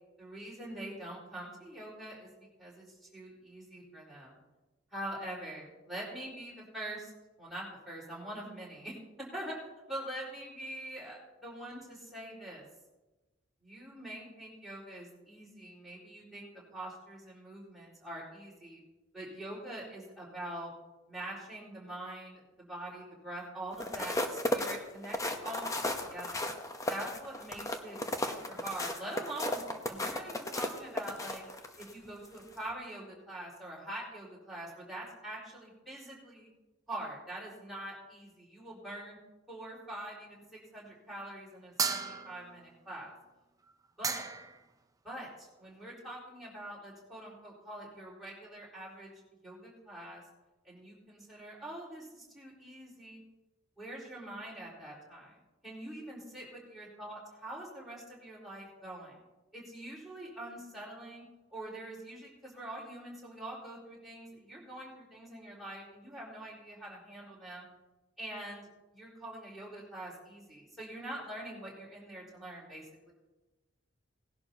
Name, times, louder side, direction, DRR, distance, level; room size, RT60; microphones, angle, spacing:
voice 1, 0.2-2.3 2.6-4.4 4.9-7.1 7.4-9.6 9.9-12.6 13.6-18.8 19.1-20.7 21.1-25.8 26.1-26.5 26.9-31.4 31.8-36.5 36.9-39.2 39.5-43.1 44.0-44.2 45.0-49.1 49.4-50.2 50.6-53.2 53.8-55.4 55.6-59.2 59.5-61.2 61.5-67.7 68.2-73.1, right 1 dB, ahead, -6 dB, 4.4 m, -44 dB
sound 1, 23.7-31.9 32.4-32.6, left 1 dB, 15° left, 0.8 m, -35 dB
sound 2, 41.8-42.6 43.7-43.8 44.0-44.6, right 5 dB, 20° right, 0.6 m, -34 dB
19.0 x 11.5 x 2.8 m, 1.1 s
head